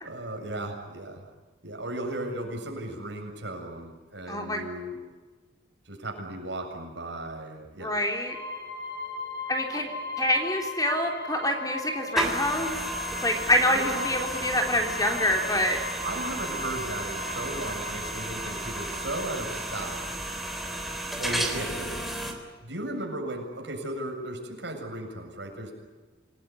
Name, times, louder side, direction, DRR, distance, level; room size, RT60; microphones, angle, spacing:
voice 1, 0.0-1.2 1.6-5.0 5.9-8.0 13.7-14.1 16.0-20.2 21.2-22.1 22.6-25.7, right 1 dB, 65° right, 2 dB, 7.6 m, -36 dB
voice 2, 4.3-4.6 7.8-8.4 9.5-9.9 10.2-12.8 13.1-15.8, left 1 dB, 20° left, 3 dB, 3.8 m, -26 dB
sound 1, 8.3-20.7, left 2 dB, 65° left, 5.6 m, -38 dB
sound 2, 12.1-22.3, right 1 dB, ahead, 3.6 m, -33 dB
28.5 x 19.5 x 9.8 m, 1.3 s
head